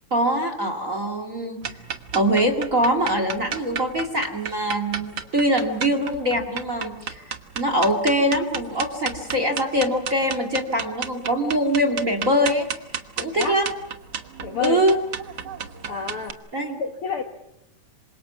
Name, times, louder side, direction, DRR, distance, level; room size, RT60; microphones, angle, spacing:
voice 1, 0.1-1.6 2.1-7.2 7.6-12.7 13.2-13.7 14.6-15.0 16.5-16.8, equal, 30° right, 7 dB, 2.0 m, -23 dB
sound 1, 1.6-16.3, right 7 dB, 60° right, 1.0 m, -33 dB
voice 2, 14.4-14.8 15.9-16.4 16.8-17.2, left 6 dB, 55° left, 6 dB, 1.7 m, -28 dB
27.0 x 25.5 x 6.0 m, 0.84 s
omnidirectional pair, 3.9 m